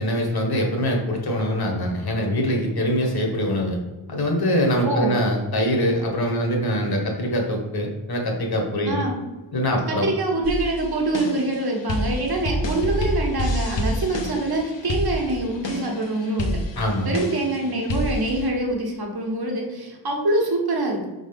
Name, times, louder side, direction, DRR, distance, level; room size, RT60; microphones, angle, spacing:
voice 1, 0.0-3.8 4.1-9.0 9.5-10.1 16.8-17.1, equal, 50° left, 1 dB, 1.4 m, -23 dB
voice 2, 4.8-5.1 8.9-9.1 9.9-16.6 17.0-21.1, right 2 dB, 55° right, 0 dB, 1.3 m, -25 dB
sound 1, 10.4-18.5, left 1 dB, 70° left, 1.0 m, -28 dB
5.1 x 4.0 x 5.2 m, 1.2 s
wide cardioid pair, 155°, 46 cm